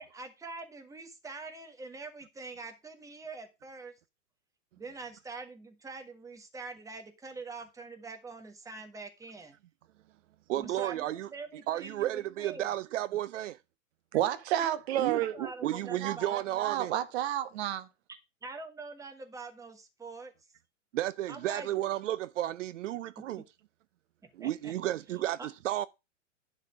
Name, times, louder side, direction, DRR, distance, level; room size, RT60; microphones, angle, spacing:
voice 1, 0.0-3.9 4.8-9.6 10.5-12.7 15.1-16.4 18.4-20.3 21.3-21.7 24.4-24.7 25.4-25.5, right 3 dB, 10° right, 1.4 m, -44 dB
voice 2, 10.5-11.3 11.7-13.6 15.0-16.9 20.9-23.4 24.3-25.9, right 13 dB, 75° right, 0.6 m, -33 dB
voice 3, 14.1-15.3 16.0-17.9, right 12 dB, 55° right, 1.2 m, -30 dB
11.0 x 4.3 x 6.0 m
hypercardioid pair, 125°, 37 cm